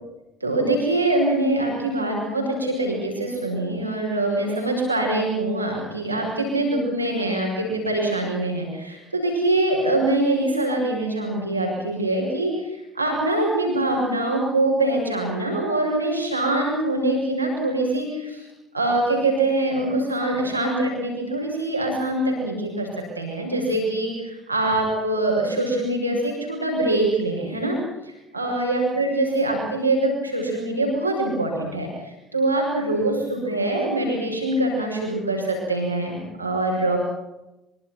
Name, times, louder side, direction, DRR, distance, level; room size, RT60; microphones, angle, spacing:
voice 1, 0.4-18.4 18.7-22.9 23.2-27.8 28.0-31.9 32.3-37.0, right 2 dB, 90° right, 0 dB, 7.1 m, -24 dB
25.0 x 25.0 x 6.1 m, 0.94 s
figure-of-eight pair, 55°, 0 cm